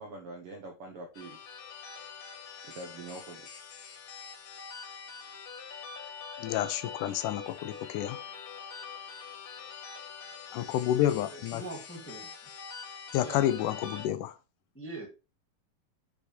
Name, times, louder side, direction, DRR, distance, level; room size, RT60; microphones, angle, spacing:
voice 1, 0.0-1.4 2.6-3.5, right 2 dB, 80° right, 1.2 m, -44 dB
sound 1, 1.1-14.1, left 6 dB, 60° left, 2.1 m, -44 dB
voice 2, 6.4-8.2 10.5-11.6 13.1-14.4, left 12 dB, 80° left, 2.0 m, -29 dB
voice 3, 11.0-12.3 13.2-13.4 14.7-15.1, right 2 dB, 15° left, 0.5 m, -42 dB
7.8 x 5.2 x 3.2 m
omnidirectional pair, 3.9 m